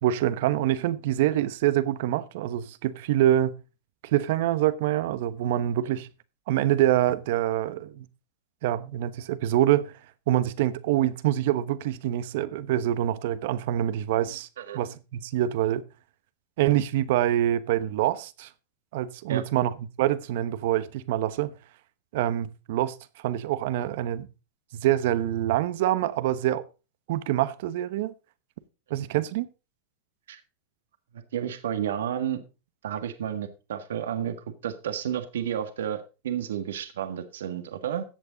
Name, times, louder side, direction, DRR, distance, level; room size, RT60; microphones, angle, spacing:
voice 1, 0.0-3.6 4.0-6.1 6.5-8.0 8.6-9.9 10.3-14.5 14.7-15.8 16.6-18.5 18.9-21.5 22.1-24.3 24.7-26.6 27.1-28.1 28.9-29.5, right 12 dB, 65° right, 1.0 m, -25 dB
voice 2, 31.3-32.4 32.8-34.4 34.6-38.0, right 9 dB, 85° right, 1.6 m, -31 dB
14.0 x 8.0 x 4.0 m
hypercardioid pair, 120°, 0 cm